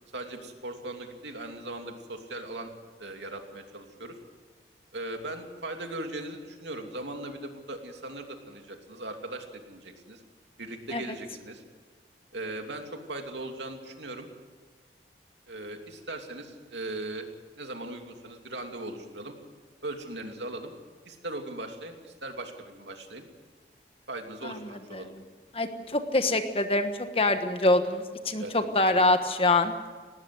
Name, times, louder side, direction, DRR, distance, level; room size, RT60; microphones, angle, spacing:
voice 1, 0.1-2.7 3.0-4.2 4.9-10.2 10.6-11.6 12.3-14.3 15.5-17.2 17.6-19.3 19.8-20.7 21.0-23.2 24.1-25.1 28.4-29.0, right 2 dB, 90° right, 4 dB, 2.9 m, -39 dB
voice 2, 24.4-25.1 25.5-29.7, left 2 dB, 30° left, 8 dB, 1.3 m, -25 dB
19.5 x 18.5 x 7.9 m, 1.5 s
head